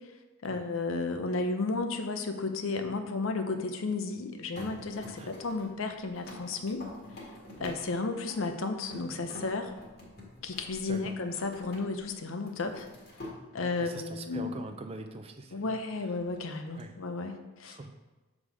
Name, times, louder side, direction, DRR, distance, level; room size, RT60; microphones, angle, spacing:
voice 1, 0.4-6.8 7.2-7.3 7.6-9.7 10.4-12.9 13.5-14.6 15.5-17.8, left 3 dB, 75° left, 7 dB, 0.6 m, -33 dB
sound 1, 4.5-12.1 12.4-13.4 16.0-16.8, left 1 dB, 50° left, 1.5 m, -47 dB
voice 2, 13.8-15.8 16.7-16.9 17.6-18.0, right 2 dB, 30° right, 6 dB, 0.4 m, -43 dB
6.6 x 3.7 x 4.7 m, 1.2 s
head